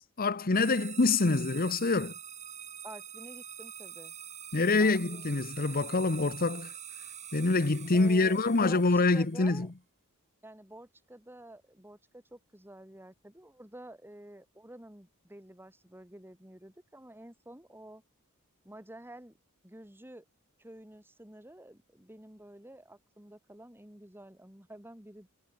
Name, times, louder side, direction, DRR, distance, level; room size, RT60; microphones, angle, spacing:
voice 1, 0.0-2.1 4.5-6.7 7.3-9.7, left 3 dB, 40° left, 1.0 m, -26 dB
sound 1, 0.5-9.5, right 9 dB, 35° right, 4.2 m, -45 dB
voice 2, 2.8-4.1 4.8-5.2 7.9-9.7 10.4-18.0 18.6-19.3 19.6-20.3 20.6-25.3, right 1 dB, 10° right, 3.6 m, -50 dB
head